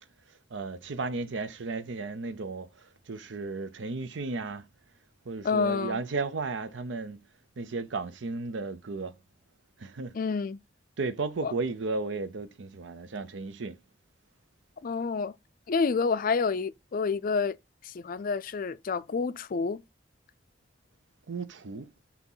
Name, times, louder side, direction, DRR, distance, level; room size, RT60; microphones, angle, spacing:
voice 1, 0.5-2.7 3.1-4.6 5.3-7.2 7.6-9.1 9.8-10.2 11.0-13.8 21.3-21.9, right 3 dB, 75° right, 0.6 m, -34 dB
voice 2, 5.4-6.0 10.1-10.6 11.4-11.5 14.8-15.3 15.7-17.6 17.8-19.8, left 5 dB, 45° left, 0.4 m, -28 dB
6.1 x 2.9 x 5.5 m
head